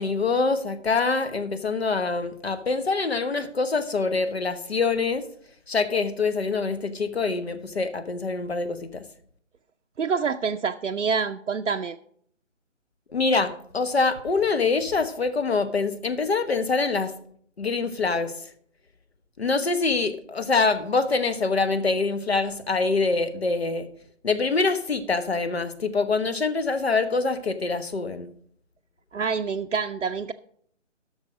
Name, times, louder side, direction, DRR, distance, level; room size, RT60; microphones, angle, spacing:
voice 1, 0.0-5.2 5.7-9.1 13.1-17.1 17.6-18.5 19.4-23.9 24.2-28.3, left 4 dB, 55° left, 11 dB, 1.0 m, -25 dB
voice 2, 10.0-12.0 29.1-30.3, right 5 dB, 75° right, 5 dB, 0.6 m, -26 dB
12.0 x 6.4 x 5.0 m, 0.64 s
figure-of-eight pair, 150°, 38 cm